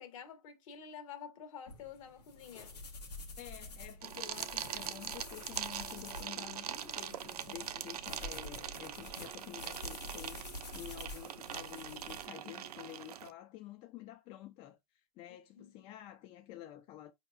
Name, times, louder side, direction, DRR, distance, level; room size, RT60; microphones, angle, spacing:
voice 1, 0.0-2.8 15.5-15.7, left 7 dB, 55° left, 1.1 m, -49 dB
sound 1, 1.7-12.3, left 2 dB, 85° left, 1.3 m, -48 dB
voice 2, 3.4-17.1, left 13 dB, 30° left, 0.3 m, -50 dB
sound 2, 4.0-13.3, right 10 dB, 75° right, 0.5 m, -42 dB
4.7 x 2.8 x 2.3 m
hypercardioid pair, 115°, 20 cm